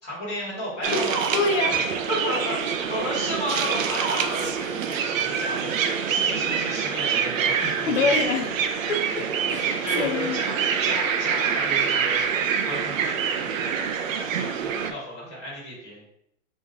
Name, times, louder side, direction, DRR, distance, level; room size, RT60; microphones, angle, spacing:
voice 1, 0.0-1.2 1.6-7.9 9.5-12.2 12.6-13.7 14.1-16.0, equal, ahead, -25 dB, 0.4 m, -33 dB
sound 1, 0.8-14.9, right 7 dB, 85° right, 0.6 m, -26 dB
voice 2, 0.9-1.8 7.9-8.5 8.9-9.7 10.0-10.4, left 4 dB, 70° left, 5 dB, 0.8 m, -26 dB
3.1 x 3.0 x 3.6 m, 0.75 s
supercardioid pair, 175°, 38 cm